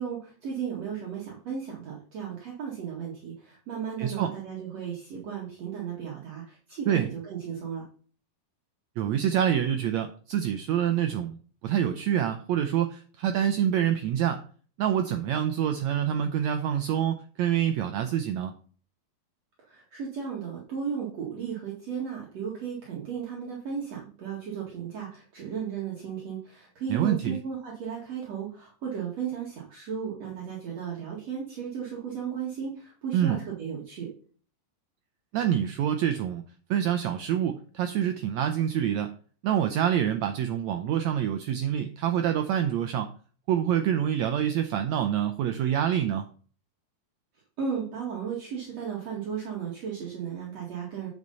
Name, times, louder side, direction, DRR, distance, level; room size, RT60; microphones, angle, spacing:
voice 1, 0.0-7.9 19.6-34.1 47.6-51.1, right 7 dB, 55° right, -3 dB, 2.8 m, -35 dB
voice 2, 4.0-4.3 6.9-7.1 9.0-11.4 11.6-14.4 14.8-18.5 26.9-27.4 33.1-33.4 35.3-36.4 36.7-39.1 39.4-43.1 43.5-46.2, right 10 dB, 85° right, 7 dB, 1.6 m, -26 dB
9.5 x 6.6 x 4.0 m, 0.42 s
omnidirectional pair, 4.0 m